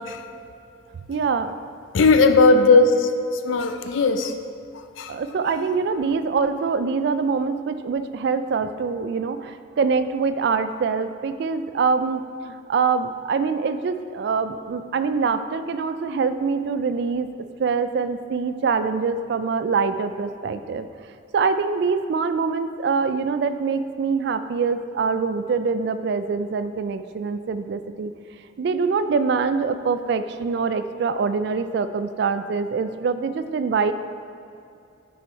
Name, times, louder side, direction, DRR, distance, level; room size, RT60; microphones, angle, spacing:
voice 1, 1.1-1.6 5.1-20.9 21.3-28.1 28.6-33.9, right 5 dB, 60° right, 10 dB, 0.3 m, -24 dB
voice 2, 1.9-3.1 3.4-4.3 5.0-5.1, left 3 dB, 80° left, 8 dB, 0.5 m, -17 dB
6.8 x 4.9 x 4.4 m, 2.5 s
head